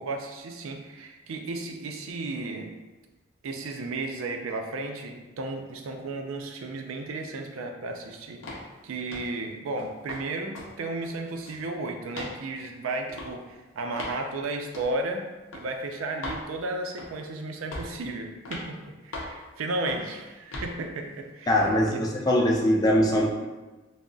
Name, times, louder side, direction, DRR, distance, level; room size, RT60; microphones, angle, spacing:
voice 1, 0.0-2.7 3.4-8.4 8.8-15.2 15.5-22.2, right 2 dB, 90° right, 3 dB, 0.4 m, -34 dB
sound 1, 8.4-8.7 9.1-9.4 9.8-10.2 10.5-10.7 11.0-11.7 12.1-12.4 13.1-13.3 14.0-14.2 14.7-14.9 15.5-15.7 16.2-16.4 17.0-17.3 17.7-18.0 18.5-18.7 19.1-19.4 19.9-20.1 20.5-20.7, left 2 dB, 85° left, 0.6 m, -38 dB
voice 2, 21.5-23.3, equal, 20° left, 0 dB, 0.3 m, -22 dB
2.3 x 2.0 x 3.7 m, 1.2 s
head